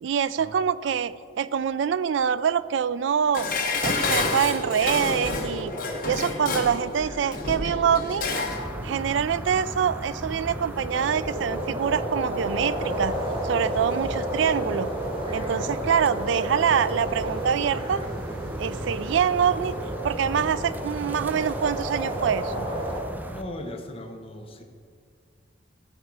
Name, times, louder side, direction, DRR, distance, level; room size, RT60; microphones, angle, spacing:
voice 1, 0.0-3.5 3.8-5.7 6.1-8.2 8.8-13.1 13.4-14.9 15.3-18.0 18.6-19.8 20.0-22.7, right 7 dB, 75° right, 17 dB, 0.3 m, -25 dB
Dishes pots and pans, 3.3-8.6 9.0-9.1, left 3 dB, 50° left, 1.3 m, -29 dB
sound 1, 4.4-23.0, equal, 30° right, 1.8 m, -33 dB
sound 2, 8.5-23.4, right 1 dB, 10° right, 0.5 m, -36 dB
voice 2, 15.5-15.8 23.3-24.6, left 1 dB, 30° left, 4 dB, 0.9 m, -38 dB
15.0 x 5.9 x 4.8 m, 2.1 s
head